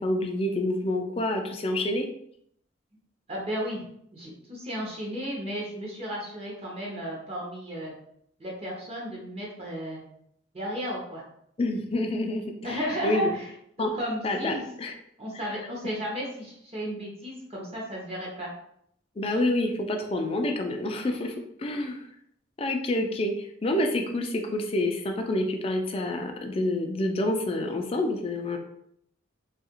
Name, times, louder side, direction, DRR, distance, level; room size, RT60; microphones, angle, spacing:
voice 1, 0.0-2.1 11.6-13.3 13.8-14.0 14.2-14.9 15.3-15.5 19.2-22.1 22.6-28.6, left 1 dB, 30° left, 4 dB, 0.3 m, -28 dB
voice 2, 3.3-3.8 4.1-7.9 8.4-10.1 10.5-11.2 12.6-13.5 14.0-14.6 15.2-18.5, equal, 30° right, -3 dB, 0.7 m, -33 dB
2.8 x 2.4 x 2.9 m, 0.71 s
head